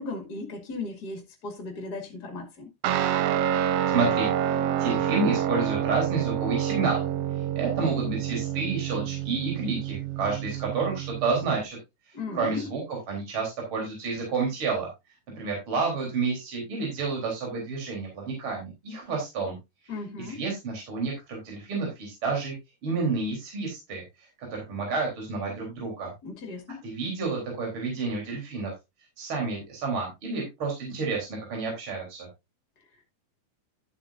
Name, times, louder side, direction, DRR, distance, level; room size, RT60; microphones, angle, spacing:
voice 1, 0.0-2.7 12.1-12.7 19.9-20.4 26.2-26.8, left 3 dB, 35° left, 2.6 m, -36 dB
Guitar, 2.8-11.6, right 10 dB, 75° right, 1.5 m, -28 dB
voice 2, 3.9-7.1 7.6-11.8 12.3-14.9 15.3-19.6 20.2-22.6 22.8-24.0 24.4-26.1 26.8-28.7 29.2-32.3, right 4 dB, 40° right, 4.5 m, -30 dB
12.5 x 8.7 x 2.6 m
omnidirectional pair, 3.5 m